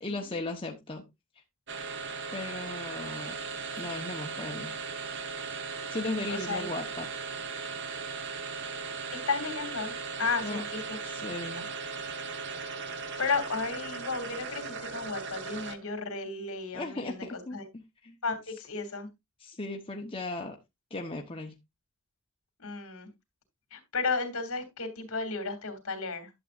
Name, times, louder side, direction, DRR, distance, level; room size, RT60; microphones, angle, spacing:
voice 1, 0.0-1.0 2.3-3.4 3.8-4.8 5.9-7.1 10.4-10.6 11.1-11.7 16.7-18.2 19.4-20.6 20.9-21.5, left 2 dB, 25° left, 1.1 m, -37 dB
sound 1, 1.7-16.0, right 5 dB, 50° right, 1.2 m, -38 dB
voice 2, 6.3-6.7 9.1-11.0 11.4-11.6 12.6-12.7 13.2-17.3 17.5-17.7 18.2-19.1 22.6-23.1 23.7-26.3, left 4 dB, 65° left, 2.9 m, -33 dB
11.5 x 7.7 x 2.6 m
head